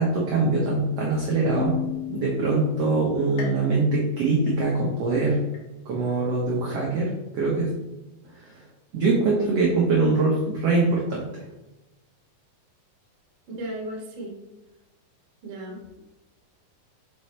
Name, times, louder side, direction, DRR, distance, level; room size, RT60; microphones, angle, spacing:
voice 1, 0.0-1.8 2.1-5.4 5.8-7.7 8.3-8.5 8.9-11.4, right 3 dB, 90° right, -3 dB, 1.3 m, -23 dB
Keyboard (musical), 1.5-3.4, left 7 dB, 85° left, 2.4 m, -34 dB
sound 1, 3.4-5.1 5.5-6.1 6.6-6.7 7.7-7.8, left 3 dB, 65° left, 2.7 m, -45 dB
voice 2, 13.5-14.4 15.4-15.8, right 1 dB, 55° right, -2 dB, 1.3 m, -35 dB
6.0 x 5.4 x 3.2 m, 1.0 s
omnidirectional pair, 4.3 m